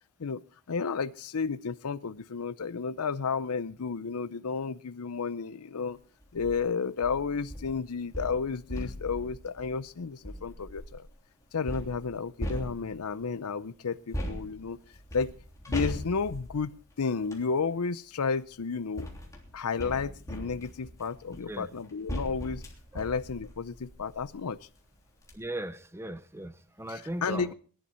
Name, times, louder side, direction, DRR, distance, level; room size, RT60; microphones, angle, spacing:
voice 1, 0.7-6.0 6.3-11.1 11.5-14.8 15.1-15.3 15.7-19.1 19.5-22.6 22.9-24.7 26.9-27.5, left 5 dB, 85° left, 0.6 m, -32 dB
sound 1, 6.2-6.6 7.0-11.1 11.7-13.2 14.1-17.5 18.4-24.4 24.8-24.9 25.2-25.3, equal, 15° left, 3.2 m, -40 dB
voice 2, 25.3-27.5, right 1 dB, 10° right, 0.8 m, -38 dB
21.5 x 11.5 x 4.4 m
head